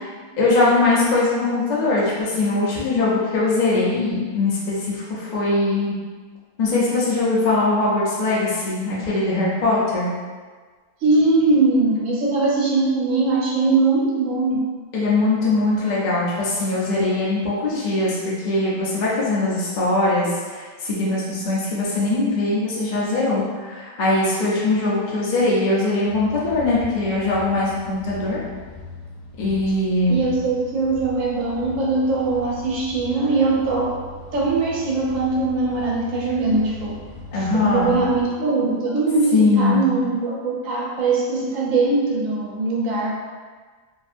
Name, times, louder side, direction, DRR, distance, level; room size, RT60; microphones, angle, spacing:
voice 1, 0.4-5.9 6.6-10.1 14.9-28.4 29.4-30.2 37.3-37.9 39.3-39.9, left 2 dB, 50° left, -7 dB, 0.5 m, -21 dB
voice 2, 11.0-14.6 30.1-33.9 34.3-37.0 37.3-43.1, right 3 dB, 70° right, -4 dB, 1.1 m, -21 dB
sound 1, 26.1-38.2, left 2 dB, 85° left, 1.1 m, -39 dB
2.8 x 2.5 x 2.5 m, 1.5 s
omnidirectional pair, 1.5 m